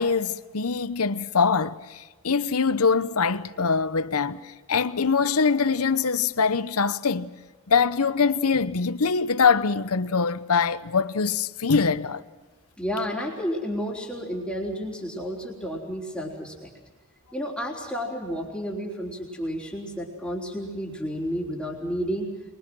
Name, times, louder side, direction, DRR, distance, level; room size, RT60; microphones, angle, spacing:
voice 1, 0.0-7.3 7.7-12.2, left 5 dB, 80° left, 0.9 m, -23 dB
voice 2, 12.8-16.7 17.3-22.3, equal, 5° left, 3.7 m, -31 dB
23.5 x 23.0 x 6.2 m
head